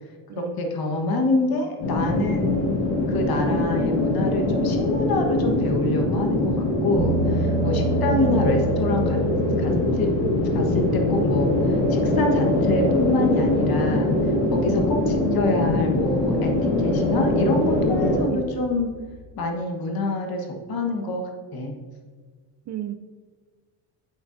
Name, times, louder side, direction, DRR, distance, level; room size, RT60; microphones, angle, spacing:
voice 1, 0.3-2.7 3.1-9.2 9.6-10.1 10.5-18.9 19.4-21.2 21.5-21.7, left 2 dB, 50° left, 2 dB, 1.4 m, -26 dB
sound 1, 1.8-18.2, left 2 dB, 75° left, 1.8 m, -23 dB
sound 2, 7.0-19.3, right 3 dB, 65° right, 0.8 m, -33 dB
voice 2, 8.1-8.7 18.3-18.5 22.7-22.9, right 12 dB, 40° right, 9 dB, 0.4 m, -33 dB
8.0 x 6.7 x 2.6 m, 1.5 s
cardioid pair, 95°, 45 cm